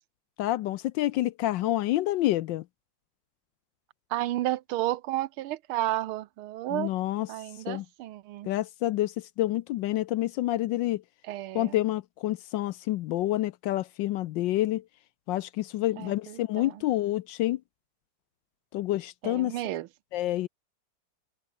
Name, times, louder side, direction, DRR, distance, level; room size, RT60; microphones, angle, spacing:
voice 1, 0.4-2.6 6.7-7.3 7.7-7.8 8.4-11.0 11.5-14.8 15.3-17.6 18.7-19.5 20.1-20.5, left 15 dB, 75° left, 1.1 m, -28 dB
voice 2, 4.1-6.9 7.3-8.5 11.3-11.8 16.0-16.7 19.2-19.9, right 15 dB, 75° right, 1.6 m, -32 dB
omnidirectional pair, 2.4 m